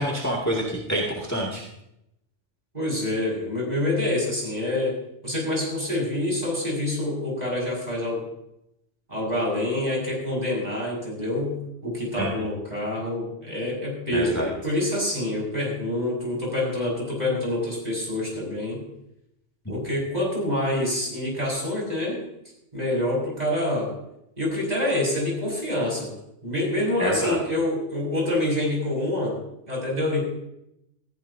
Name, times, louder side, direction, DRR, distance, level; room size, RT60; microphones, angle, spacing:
voice 1, 0.0-1.6 12.2-12.3 14.1-14.5 27.0-27.4, equal, 15° left, -4 dB, 2.3 m, -27 dB
voice 2, 2.7-4.9 5.2-8.2 9.1-11.6 11.8-18.8 19.7-22.2 22.7-23.9 24.4-26.1 26.4-29.4 29.7-30.2, left 1 dB, 35° right, -3 dB, 6.5 m, -26 dB
20.5 x 15.0 x 2.8 m, 0.82 s
omnidirectional pair, 1.2 m